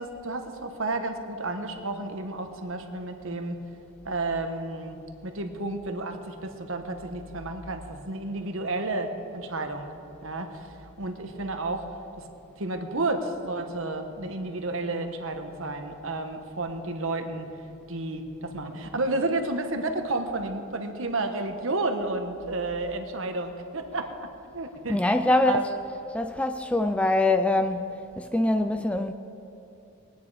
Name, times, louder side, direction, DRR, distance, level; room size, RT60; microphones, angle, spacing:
voice 1, 0.0-3.6 4.0-9.9 10.2-11.9 12.6-17.5 17.9-25.0 25.2-25.6, right 2 dB, 60° right, 1.2 m, -31 dB
voice 2, 24.9-25.8 26.1-29.1, left 2 dB, 5° left, 0.3 m, -24 dB
21.5 x 9.4 x 4.9 m
head